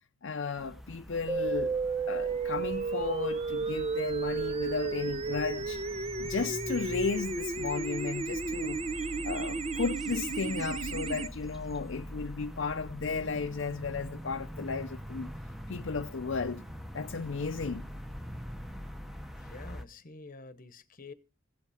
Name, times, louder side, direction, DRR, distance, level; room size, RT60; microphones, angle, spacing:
voice 1, 0.2-1.8 2.1-5.8 6.2-8.8 9.2-15.3 15.7-16.6 16.9-17.8, left 4 dB, 65° left, 0.6 m, -34 dB
sound 1, 0.6-19.8, equal, ahead, 0.9 m, -44 dB
sound 2, 1.3-11.3, right 4 dB, 30° right, 0.6 m, -33 dB
voice 2, 19.4-21.1, left 3 dB, 45° left, 1.0 m, -48 dB
16.0 x 8.3 x 4.9 m
head